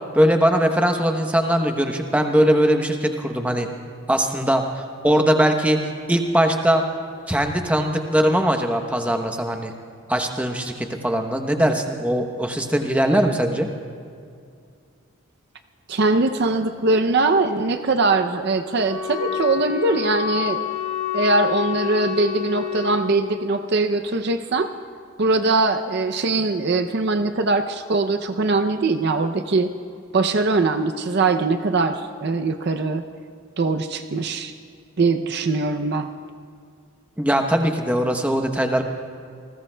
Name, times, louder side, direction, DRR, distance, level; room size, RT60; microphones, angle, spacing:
voice 1, 0.1-3.7 4.1-5.8 6.1-6.8 7.3-9.7 10.1-13.7 37.2-38.8, equal, 5° right, 4 dB, 0.8 m, -20 dB
voice 2, 15.9-20.6 21.1-24.7 25.2-29.7 30.1-33.0 33.6-34.5 35.0-36.1, right 3 dB, 50° right, 7 dB, 0.5 m, -21 dB
Wind instrument woodwind instrument, 18.7-23.0, left 10 dB, 60° left, 4.5 m, -28 dB
28.0 x 20.5 x 2.2 m, 2.3 s
head